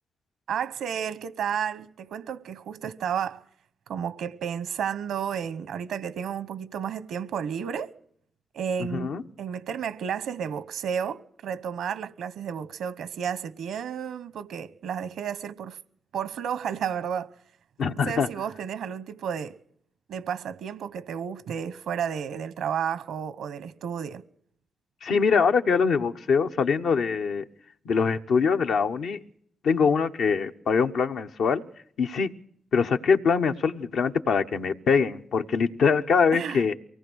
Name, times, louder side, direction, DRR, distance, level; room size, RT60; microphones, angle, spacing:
voice 1, 0.5-3.4 3.9-7.9 8.5-9.1 9.4-15.8 16.1-17.3 17.9-19.6 20.1-24.2 36.3-36.6, right 8 dB, 85° right, 1.0 m, -32 dB
voice 2, 8.9-9.2 17.8-18.3 25.0-27.4 27.8-29.2 29.6-31.6 32.0-32.3 32.7-36.7, left 5 dB, 75° left, 1.1 m, -23 dB
24.0 x 18.5 x 6.3 m
cardioid pair, 70°, 0 cm